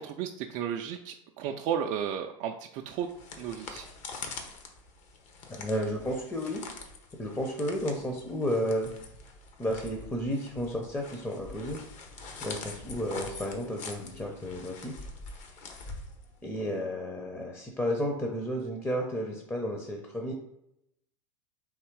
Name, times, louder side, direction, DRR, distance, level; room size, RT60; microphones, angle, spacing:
voice 1, 0.0-3.1 3.4-3.9, right 8 dB, 45° right, 4 dB, 0.4 m, -33 dB
sound 1, 2.9-16.6, left 3 dB, 45° left, 0.9 m, -44 dB
voice 2, 5.5-6.6 7.2-8.9 9.6-11.8 12.4-15.0 16.4-20.3, equal, 10° left, 2 dB, 0.7 m, -32 dB
3.6 x 3.0 x 4.6 m, 0.81 s
hypercardioid pair, 95°, 16 cm